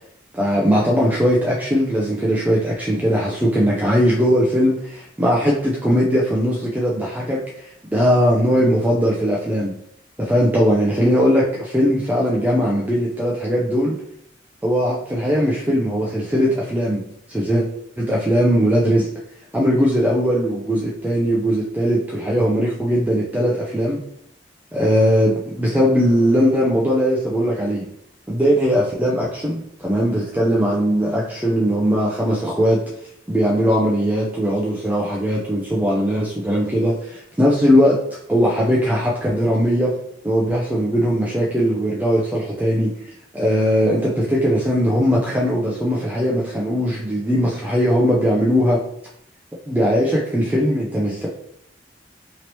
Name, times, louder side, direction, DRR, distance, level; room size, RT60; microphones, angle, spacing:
voice 1, 0.3-9.7 10.2-14.0 14.6-17.0 17.3-17.7 18.0-19.1 19.5-24.0 24.7-27.9 28.3-32.8 33.3-38.0 38.3-40.0 40.2-42.9 43.3-48.8 49.7-51.3, equal, 10° right, -5 dB, 0.4 m, -19 dB
3.0 x 2.8 x 2.9 m, 0.71 s
head